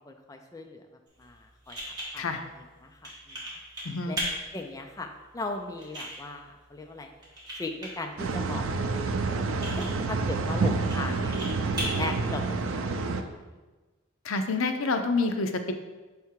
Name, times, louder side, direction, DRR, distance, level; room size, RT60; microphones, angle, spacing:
voice 1, 0.1-0.8 1.2-1.8 2.1-2.3 2.8-3.4 4.1-4.2 4.5-5.1 5.3-7.1 7.5-11.4 11.8-13.4, left 2 dB, 15° left, 3 dB, 0.4 m, -38 dB
sound 1, 1.1-13.1, equal, 20° right, 1.9 m, -40 dB
voice 2, 3.8-4.2 14.2-15.7, left 3 dB, 85° left, 7 dB, 0.6 m, -27 dB
sound 2, 8.2-13.2, right 3 dB, 80° right, 0.4 m, -28 dB
6.5 x 3.5 x 4.6 m, 1.3 s
head